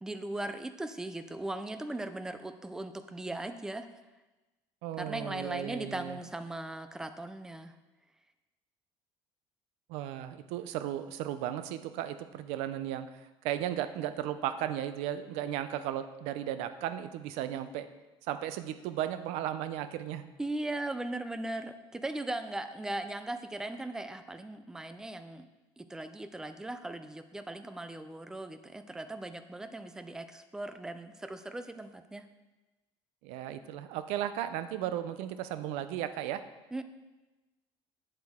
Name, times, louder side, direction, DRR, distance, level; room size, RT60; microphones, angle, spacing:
voice 1, 0.0-3.9 5.0-7.7 20.4-25.5 25.8-32.2 36.7-36.8, right 2 dB, 5° right, 9 dB, 0.3 m, -38 dB
voice 2, 4.8-6.2 9.9-13.1 13.4-17.9 18.3-20.2 33.2-36.4, right 11 dB, 80° right, 11 dB, 0.6 m, -35 dB
8.1 x 7.6 x 3.6 m, 1.1 s
cardioid pair, 175°, 11 cm